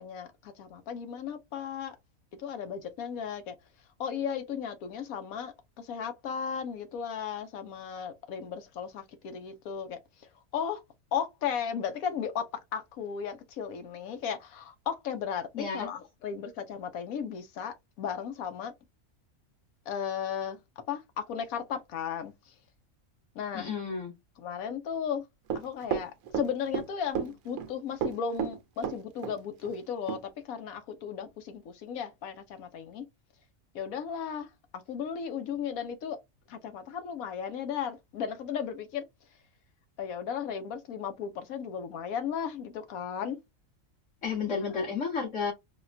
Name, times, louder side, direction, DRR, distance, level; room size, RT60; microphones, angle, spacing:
voice 1, 0.0-2.0 2.4-3.5 4.0-10.0 10.5-10.8 11.1-18.7 19.9-20.6 20.9-22.3 23.3-23.7 24.4-25.2 25.5-30.2 30.4-33.0 33.7-34.5 34.7-36.2 36.5-39.1 40.0-43.4 44.5-44.7, left 7 dB, 85° left, 1.2 m, -35 dB
voice 2, 15.5-15.9 23.5-24.1 44.2-45.5, left 5 dB, 60° left, 2.1 m, -32 dB
Run, 25.5-26.9 27.1-27.7 28.0-29.4 29.6-29.7 30.1-30.2, right 8 dB, 80° right, 1.1 m, -32 dB
4.0 x 2.3 x 2.6 m
omnidirectional pair, 1.5 m